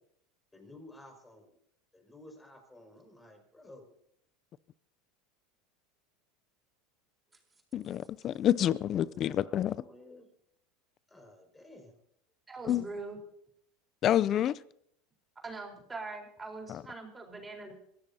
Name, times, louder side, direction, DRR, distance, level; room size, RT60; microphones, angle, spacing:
voice 1, 0.5-1.6 1.9-3.9 8.9-10.3 11.1-12.0, left 1 dB, 10° left, 3 dB, 5.6 m, -53 dB
voice 2, 7.7-9.7 12.7-12.8 14.0-14.6 16.7-16.8, left 11 dB, 45° left, 20 dB, 0.5 m, -28 dB
voice 3, 12.5-13.2 15.4-17.7, right 3 dB, 15° right, 1 dB, 4.2 m, -42 dB
23.5 x 16.5 x 2.8 m, 0.70 s
hypercardioid pair, 95°, 0 cm